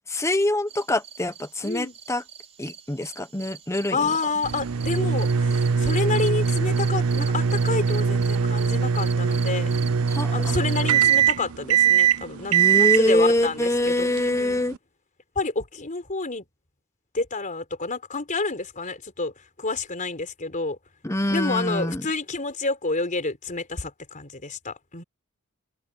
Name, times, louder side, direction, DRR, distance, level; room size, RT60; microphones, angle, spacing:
voice 1, 0.1-2.2 2.6-4.1 10.1-10.5 12.5-14.7 21.0-22.0, left 1 dB, 15° left, 1.1 m, -24 dB
sound 1, 0.7-11.3, right 6 dB, 30° right, 4.9 m, -43 dB
voice 2, 1.6-2.0 3.9-9.7 10.3-14.6 15.3-16.5 17.1-19.3 19.6-20.8 21.3-25.0, left 3 dB, 35° left, 4.4 m, -29 dB
sound 2, 4.4-14.8, right 7 dB, 75° right, 0.5 m, -22 dB
head